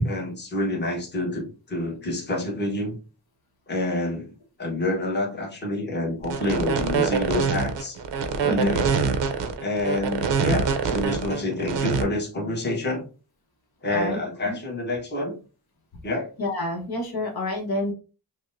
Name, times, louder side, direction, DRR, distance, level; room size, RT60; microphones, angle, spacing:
voice 1, 0.0-2.9 3.7-4.3 4.6-8.0 8.4-8.8 9.6-13.1 13.8-15.4 16.0-16.3, left 2 dB, 25° left, -1 dB, 1.1 m, -27 dB
sound 1, 6.2-12.0, right 6 dB, 85° right, 0.8 m, -24 dB
voice 2, 8.5-8.8 10.4-10.6 13.9-14.2 14.4-14.6 16.4-17.9, left 1 dB, 60° left, 0 dB, 1.1 m, -29 dB
6.0 x 2.1 x 2.6 m, 0.33 s
wide cardioid pair, 175°, 41 cm